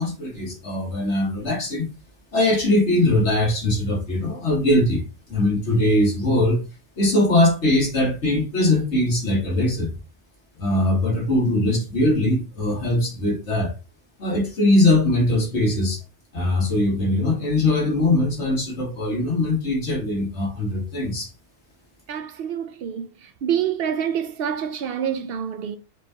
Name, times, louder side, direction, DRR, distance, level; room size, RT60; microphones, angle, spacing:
voice 1, 0.0-1.9 2.3-5.0 5.3-6.6 7.0-9.9 10.6-13.7 14.2-16.0 16.3-21.3, left 1 dB, 80° left, 2.1 m, -21 dB
voice 2, 22.1-23.1 23.4-25.8, right 8 dB, 65° right, 0.7 m, -26 dB
5.0 x 3.6 x 2.7 m
omnidirectional pair, 1.1 m